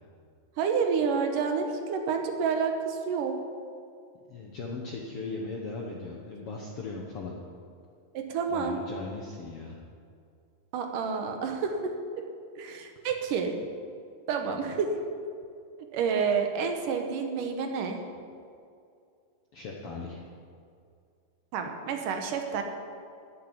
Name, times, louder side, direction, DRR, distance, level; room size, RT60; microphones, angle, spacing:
voice 1, 0.6-3.4 8.1-8.8 10.7-11.9 12.6-13.5 14.3-14.9 15.9-18.0 21.5-22.6, right 6 dB, 75° right, 4 dB, 2.4 m, -29 dB
voice 2, 4.3-7.4 8.5-9.8 19.5-20.2, left 3 dB, 65° left, -1 dB, 1.4 m, -38 dB
12.0 x 7.5 x 9.8 m, 2.4 s
omnidirectional pair, 4.2 m